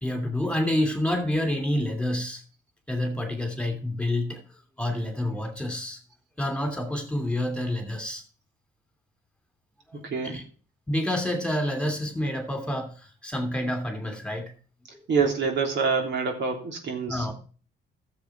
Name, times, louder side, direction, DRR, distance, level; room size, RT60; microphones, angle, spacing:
voice 1, 0.0-2.4 2.9-4.4 4.8-6.0 6.4-8.2 9.9-10.0 10.2-10.4 10.9-14.5 17.1-17.3, left 1 dB, 5° left, 5 dB, 2.8 m, -28 dB
voice 2, 10.0-10.4 15.1-17.3, right 5 dB, 65° right, 2 dB, 3.2 m, -26 dB
13.0 x 7.2 x 4.6 m, 0.39 s
cardioid pair, 90°, 20 cm